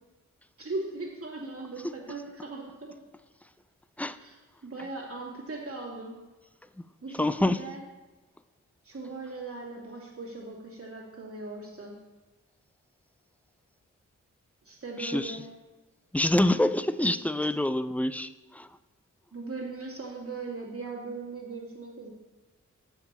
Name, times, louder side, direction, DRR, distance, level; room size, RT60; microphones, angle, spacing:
voice 1, 0.6-2.9 4.2-6.1 7.0-7.8 8.8-11.9 14.6-15.4 19.3-22.1, right 3 dB, 45° right, -4 dB, 2.6 m, -39 dB
voice 2, 7.2-7.6 15.0-15.4 16.1-18.7, left 1 dB, 5° left, 13 dB, 0.4 m, -26 dB
7.1 x 5.7 x 7.5 m, 1.2 s
cardioid pair, 55°, 31 cm